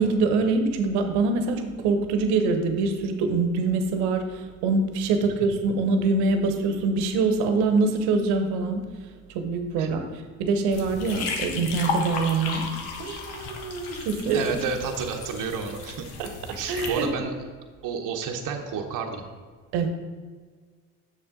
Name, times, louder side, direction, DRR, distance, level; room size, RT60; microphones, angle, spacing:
voice 1, 0.0-8.9 9.3-10.1 10.4-12.7 13.0-14.6 16.2-17.3 19.7-19.9, right 3 dB, 75° right, 7 dB, 1.0 m, -24 dB
sound 1, 10.7-17.1, left 4 dB, 70° left, 1.3 m, -34 dB
voice 2, 14.3-16.1 16.5-17.3 17.8-19.2, right 6 dB, 50° right, 2 dB, 1.0 m, -30 dB
7.0 x 6.5 x 3.8 m, 1.6 s
hypercardioid pair, 70°, 40 cm